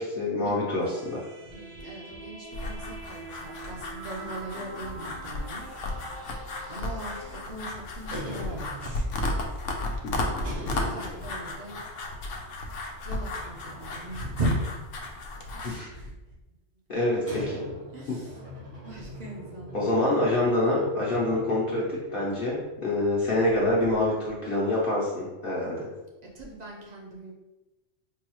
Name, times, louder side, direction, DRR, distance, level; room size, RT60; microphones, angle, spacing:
voice 1, 0.0-1.2 10.0-10.3 15.6-15.9 16.9-17.6 18.1-18.2 19.7-25.9, left 1 dB, 55° left, -6 dB, 0.9 m, -26 dB
sound 1, 0.8-7.4, right 3 dB, 65° right, 1.0 m, -45 dB
voice 2, 1.4-5.7 6.7-9.1 10.8-11.8 13.0-14.5 15.0-15.1 15.5-16.1 17.9-18.3 18.8-19.9 26.3-27.3, right 1 dB, 45° right, -2 dB, 0.6 m, -38 dB
sound 2, 2.5-15.7, left 2 dB, 80° left, 1.0 m, -34 dB
sound 3, 8.1-9.4 10.4-11.7 12.1-12.2 13.3-14.6 14.9-15.8 17.3-22.2 22.4-22.5 23.0-23.1 23.4-24.0, equal, 90° right, 2.0 m, -42 dB
4.7 x 2.3 x 3.0 m, 1.1 s
omnidirectional pair, 1.2 m